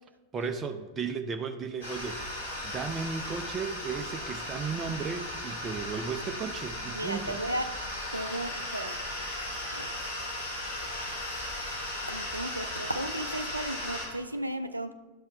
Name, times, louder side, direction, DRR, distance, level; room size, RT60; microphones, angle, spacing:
voice 1, 0.3-7.4, right 5 dB, 20° right, 7 dB, 0.5 m, -35 dB
sound 1, 1.8-14.1, left 1 dB, 60° left, 3.0 m, -36 dB
voice 2, 6.9-7.7 8.1-9.0 9.7-9.9 12.0-14.9, right 1 dB, 85° right, 9 dB, 0.4 m, -35 dB
11.5 x 5.6 x 3.4 m, 1.3 s
figure-of-eight pair, 90°, 0 cm